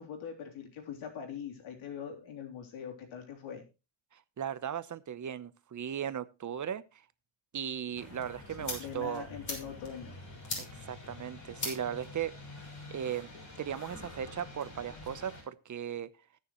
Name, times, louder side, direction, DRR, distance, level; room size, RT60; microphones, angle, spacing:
voice 1, 0.0-3.6 8.6-10.2, left 7 dB, 80° left, 2 dB, 3.6 m, -42 dB
voice 2, 4.1-7.0 7.5-9.3 10.6-12.3 12.9-13.3 13.6-16.1, right 9 dB, 40° right, 15 dB, 0.9 m, -37 dB
sound 1, 8.0-15.4, left 2 dB, 40° left, 6.2 m, -43 dB
20.5 x 6.8 x 3.1 m, 0.29 s
cardioid pair, 100°, 47 cm